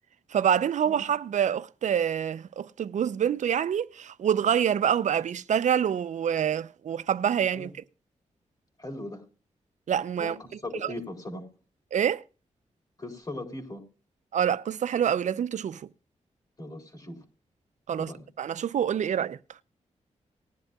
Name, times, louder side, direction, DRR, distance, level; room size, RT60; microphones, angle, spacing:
voice 1, 0.3-7.7 9.9-10.4 10.8-10.9 11.9-12.2 14.3-15.8 17.9-18.1 18.4-19.4, right 9 dB, 75° right, 0.6 m, -26 dB
voice 2, 8.8-9.2 10.2-11.5 13.0-13.8 16.6-17.2 18.0-18.3, left 1 dB, 35° left, 4.2 m, -39 dB
19.5 x 11.0 x 2.4 m
cardioid pair, 90°, 12 cm